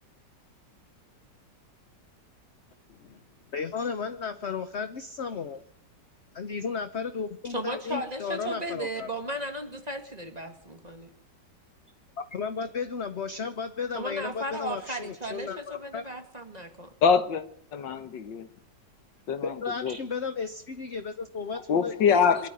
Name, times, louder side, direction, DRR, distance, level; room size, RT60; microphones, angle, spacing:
voice 1, 2.9-3.2 3.5-5.6 6.3-9.1 12.2-16.0 19.4-21.9, left 5 dB, 45° left, 1.0 m, -34 dB
voice 2, 7.4-11.1 13.9-16.9 22.0-22.5, right 1 dB, 20° right, 2.3 m, -35 dB
voice 3, 17.0-17.4 17.7-18.5 19.3-19.5 19.8-20.0 21.7-22.4, left 6 dB, 85° left, 1.9 m, -23 dB
23.0 x 12.5 x 10.0 m
omnidirectional pair, 1.9 m